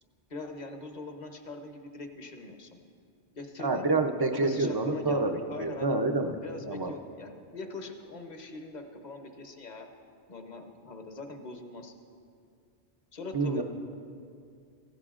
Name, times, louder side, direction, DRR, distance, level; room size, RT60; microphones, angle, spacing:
voice 1, 0.3-2.8 3.4-3.9 4.3-5.9 6.4-9.9 10.3-11.9 13.1-13.6, left 3 dB, 45° left, 5 dB, 0.9 m, -42 dB
voice 2, 3.6-5.3 5.6-6.4 6.7-6.9 13.3-13.6, right 3 dB, 30° right, 5 dB, 0.5 m, -27 dB
16.0 x 13.0 x 2.5 m, 2.3 s
omnidirectional pair, 1.1 m